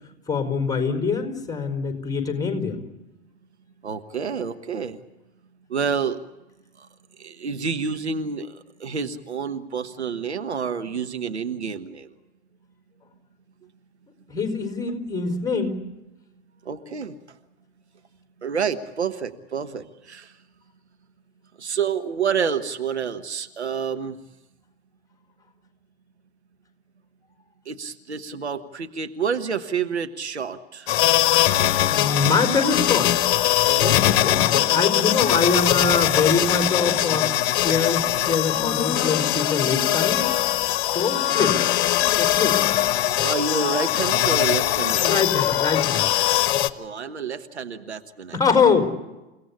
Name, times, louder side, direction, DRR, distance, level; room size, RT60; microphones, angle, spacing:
voice 1, 0.3-2.8 14.3-15.8 31.9-33.1 34.1-37.3 37.6-40.3 40.9-41.6 42.2-42.6 45.0-46.1 48.3-48.9, left 5 dB, 10° left, 4 dB, 4.6 m, -24 dB
voice 2, 3.8-5.0 5.7-6.2 6.8-6.9 7.2-12.1 16.6-17.2 18.4-20.3 21.6-24.2 27.7-30.9 33.7-34.0 41.4-41.6 43.2-45.2 46.8-48.4, right 6 dB, 80° right, 8 dB, 1.3 m, -28 dB
sound 1, 30.9-46.7, left 13 dB, 45° left, 1.3 m, -21 dB
29.0 x 17.5 x 8.4 m, 1.0 s
figure-of-eight pair, 85°, 33 cm